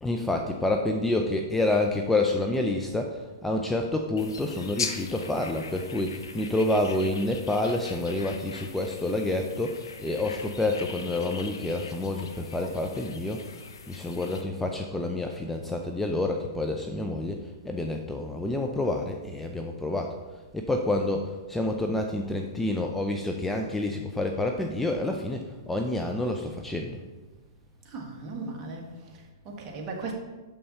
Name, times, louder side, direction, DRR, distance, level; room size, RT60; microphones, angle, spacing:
voice 1, 0.0-20.2 20.5-27.0, left 2 dB, 5° left, 3 dB, 0.4 m, -28 dB
sound 1, 4.2-14.4, left 5 dB, 85° left, 0.7 m, -40 dB
voice 2, 27.8-30.1, right 3 dB, 30° right, 0 dB, 1.5 m, -38 dB
6.7 x 5.5 x 4.2 m, 1.2 s
hypercardioid pair, 130°, 2 cm